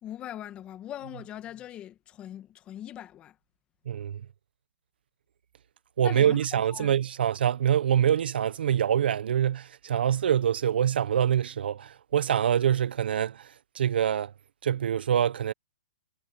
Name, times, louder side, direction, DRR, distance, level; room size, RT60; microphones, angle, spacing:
voice 1, 0.0-3.3 6.0-6.4 6.7-6.9, left 11 dB, 20° left, 1.7 m, -41 dB
voice 2, 3.9-4.2 6.0-14.3 14.6-15.5, right 9 dB, 65° right, 0.9 m, -25 dB
hypercardioid pair, 155°, 6 cm